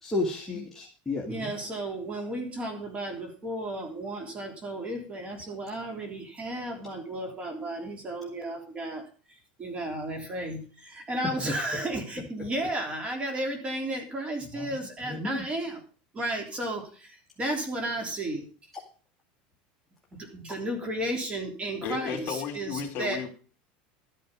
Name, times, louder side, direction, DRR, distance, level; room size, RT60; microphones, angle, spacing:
voice 1, 0.0-1.5 11.4-11.5 14.5-14.7 15.0-15.4, left 2 dB, 5° left, -2 dB, 2.1 m, -32 dB
voice 2, 1.3-9.1 9.6-15.8 16.1-18.5 20.1-23.2, right 1 dB, 25° right, 4 dB, 3.4 m, -33 dB
voice 3, 21.8-23.3, left 6 dB, 45° left, 3 dB, 3.5 m, -33 dB
12.5 x 9.4 x 5.3 m, 0.39 s
supercardioid pair, 130°, 5 cm